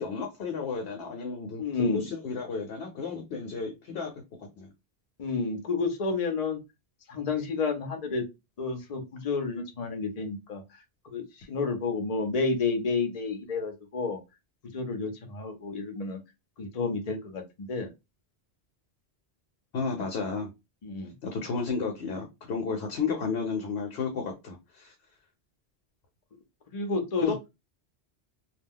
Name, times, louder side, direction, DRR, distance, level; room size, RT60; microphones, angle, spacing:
voice 1, 0.0-1.6 1.9-4.1 4.4-4.7 19.7-20.5 21.2-24.9 27.2-27.3, left 5 dB, 70° left, 0.9 m, -32 dB
voice 2, 1.6-2.0 5.2-6.6 7.1-8.3 8.6-10.6 11.1-14.2 14.7-16.2 16.6-17.9 20.8-21.1 26.7-27.3, left 4 dB, 40° left, 0.6 m, -30 dB
2.3 x 2.2 x 3.5 m
omnidirectional pair, 1.1 m